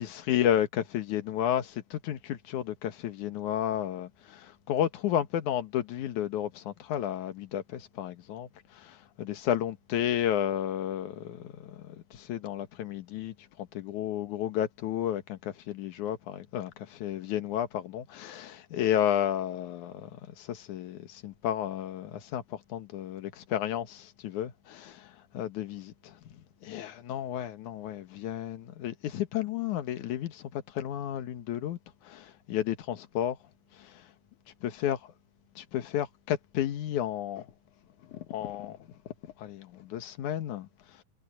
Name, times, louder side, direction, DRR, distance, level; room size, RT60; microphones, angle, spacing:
voice 1, 0.0-33.4 33.7-34.1 34.6-35.1 35.6-37.5 38.0-41.0, left 10 dB, 65° left, 2.6 m, -32 dB
omnidirectional pair, 4.0 m